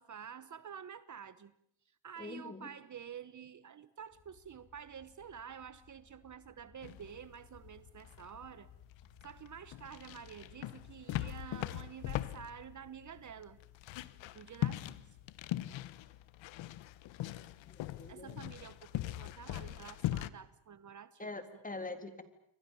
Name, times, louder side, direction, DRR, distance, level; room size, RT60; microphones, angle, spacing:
voice 1, 0.0-1.5 2.0-8.7 9.2-13.6 14.1-15.2 18.1-21.6, right 8 dB, 40° right, 15 dB, 1.1 m, -49 dB
voice 2, 2.2-2.7 17.6-18.3 21.2-22.2, left 3 dB, 20° left, 9 dB, 3.4 m, -44 dB
sound 1, 4.1-12.8, left 5 dB, 45° left, 5.9 m, -63 dB
sound 2, 6.8-20.3, left 14 dB, 80° left, 1.2 m, -41 dB
29.0 x 23.5 x 7.2 m, 0.65 s
cardioid pair, 95°, 45 cm